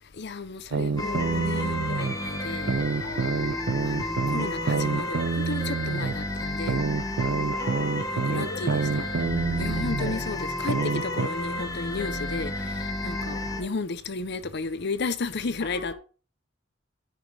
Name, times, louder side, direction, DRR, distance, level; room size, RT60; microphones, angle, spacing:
voice 1, 0.2-2.7 3.8-6.8 8.1-9.1 9.6-15.9, left 3 dB, 60° left, 0.7 m, -33 dB
sound 1, 0.7-2.1 2.7-6.2 6.7-10.1 10.7-11.3, right 4 dB, 60° right, 0.4 m, -27 dB
sound 2, 1.0-13.6, left 1 dB, 20° left, 1.3 m, -31 dB
voice 2, 3.0-3.6 7.5-10.4 10.7-10.8 13.3-13.7 15.6-15.9, left 3 dB, 75° left, 4.3 m, -43 dB
9.2 x 5.1 x 4.8 m
head